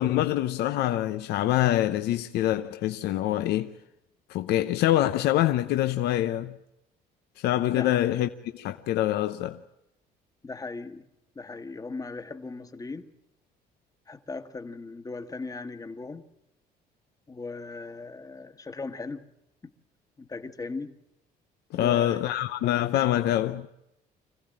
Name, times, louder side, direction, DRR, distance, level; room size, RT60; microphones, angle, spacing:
voice 1, 0.0-3.7 4.3-6.5 7.4-9.6 21.7-23.7, left 13 dB, 75° left, 0.8 m, -25 dB
voice 2, 7.7-8.0 10.4-11.1 11.3-13.1 14.1-16.2 17.3-19.3 20.2-20.9 21.7-22.4, left 3 dB, 20° left, 1.4 m, -38 dB
25.5 x 15.5 x 8.9 m
cardioid pair, 110°, 17 cm